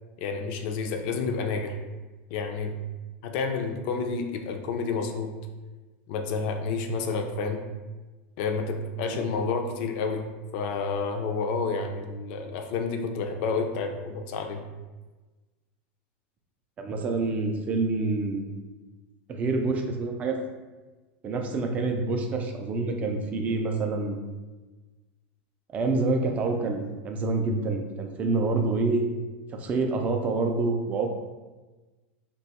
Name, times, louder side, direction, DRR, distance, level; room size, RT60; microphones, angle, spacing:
voice 1, 0.2-1.8 2.3-2.8 3.2-5.3 6.1-7.6 8.4-10.3 10.5-14.6, left 4 dB, 50° left, 4 dB, 0.4 m, -29 dB
voice 2, 16.8-18.6 19.3-20.4 21.2-24.2 25.7-29.0 29.5-31.1, right 3 dB, 20° right, 3 dB, 0.4 m, -27 dB
2.8 x 2.3 x 4.0 m, 1.2 s
supercardioid pair, 150°, 7 cm